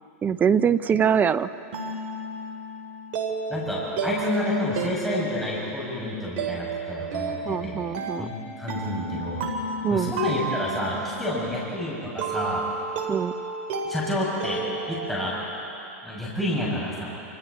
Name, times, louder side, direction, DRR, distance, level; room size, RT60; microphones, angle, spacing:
voice 1, 0.2-1.5 7.5-8.3 9.8-10.1 13.1-13.3, right 7 dB, 20° right, 14 dB, 0.7 m, -23 dB
sound 1, 0.9-15.7, right 3 dB, 55° right, 3.8 m, -33 dB
voice 2, 3.5-7.8 8.2-9.5 9.9-12.6 13.8-15.4 16.0-17.0, left 1 dB, ahead, -7 dB, 7.1 m, -29 dB
28.5 x 27.5 x 4.3 m, 2.8 s
hypercardioid pair, 115°, 8 cm